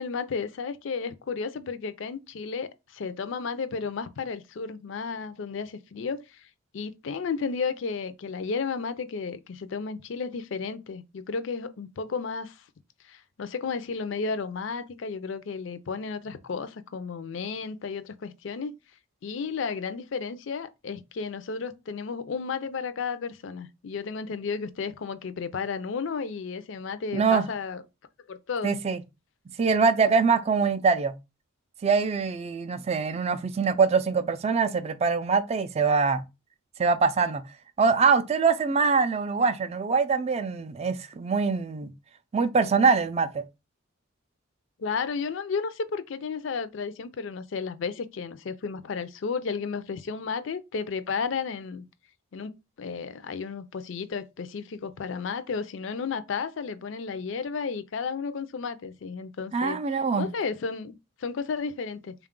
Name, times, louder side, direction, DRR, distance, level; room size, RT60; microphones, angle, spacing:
voice 1, 0.0-6.5 6.7-12.6 13.1-18.7 19.2-27.8 28.3-28.8 44.8-51.9 52.3-62.1, left 5 dB, 60° left, 0.4 m, -33 dB
voice 2, 27.1-27.4 28.6-29.0 29.6-31.1 31.8-36.2 36.8-37.4 37.8-41.9 42.3-43.4 59.5-60.3, right 5 dB, 30° right, 0.3 m, -23 dB
3.5 x 2.3 x 3.6 m
head